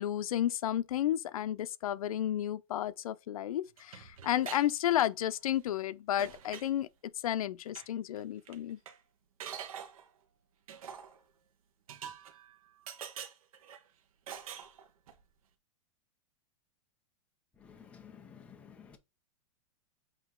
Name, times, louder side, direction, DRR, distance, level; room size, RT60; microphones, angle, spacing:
voice 1, 0.0-6.9 7.2-8.8, left 12 dB, 85° left, 0.6 m, -32 dB
sound 1, 3.8-4.7 5.0-5.5 5.8-5.9 6.2-6.7 7.7-7.9 8.2-8.3 8.5-9.0 9.4-10.1 10.7-11.2 11.9-12.6 12.9-13.8 14.3-15.2, right 8 dB, 80° right, 1.3 m, -45 dB
voice 2, 17.6-19.0, left 7 dB, 5° left, 0.6 m, -53 dB
8.3 x 2.9 x 3.8 m
supercardioid pair, 175°, 18 cm